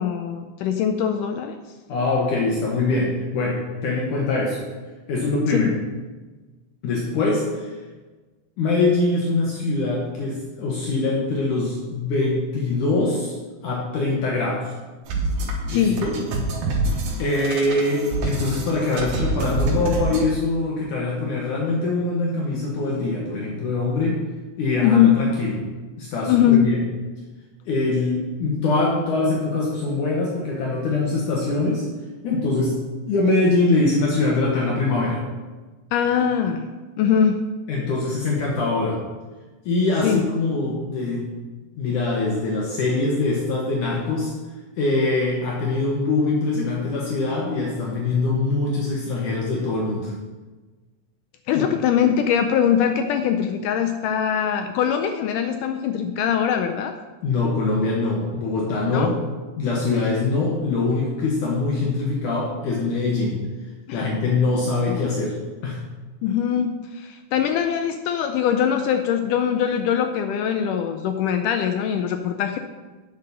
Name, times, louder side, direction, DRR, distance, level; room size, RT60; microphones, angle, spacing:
voice 1, 0.0-1.6 5.5-5.7 15.7-16.1 24.8-25.2 26.3-26.7 35.9-36.7 37.0-37.4 40.0-40.2 51.5-56.9 58.9-59.1 63.9-64.1 64.9-65.0 66.2-72.6, left 8 dB, 80° left, 6 dB, 1.9 m, -22 dB
voice 2, 1.9-4.6 5.1-5.7 6.8-7.7 8.6-13.4 13.6-14.7 15.7-16.2 17.2-24.2 24.6-25.5 26.0-26.8 27.7-31.9 32.2-32.8 33.1-35.2 37.7-39.0 39.7-41.3 41.8-44.3 44.8-50.1 51.5-51.7 57.2-59.1 59.6-63.4 63.9-65.4 65.6-65.8, left 3 dB, 65° left, -3 dB, 2.6 m, -23 dB
sound 1, 15.1-20.2, right 2 dB, 75° right, 3.1 m, -26 dB
9.1 x 6.8 x 5.5 m, 1.3 s
omnidirectional pair, 4.1 m